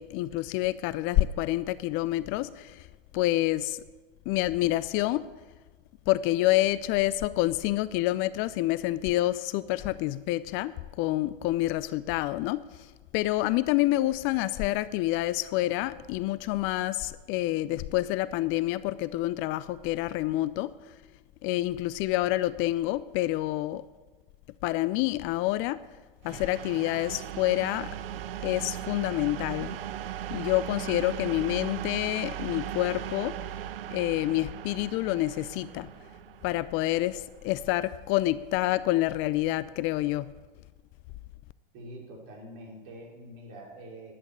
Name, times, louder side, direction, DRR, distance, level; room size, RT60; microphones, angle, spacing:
voice 1, 0.0-2.9 3.1-3.8 4.3-5.2 6.1-20.7 21.4-23.8 24.6-25.8 26.2-27.9 28.4-29.8 30.3-33.4 33.9-35.9 36.4-40.3, left 16 dB, 45° left, 16 dB, 0.5 m, -28 dB
sound 1, 26.2-37.9, right 11 dB, 75° right, 0.7 m, -38 dB
voice 2, 41.7-44.1, right 1 dB, 50° right, -1 dB, 4.9 m, -45 dB
11.0 x 8.8 x 8.9 m, 1.3 s
hypercardioid pair, 95°, 29 cm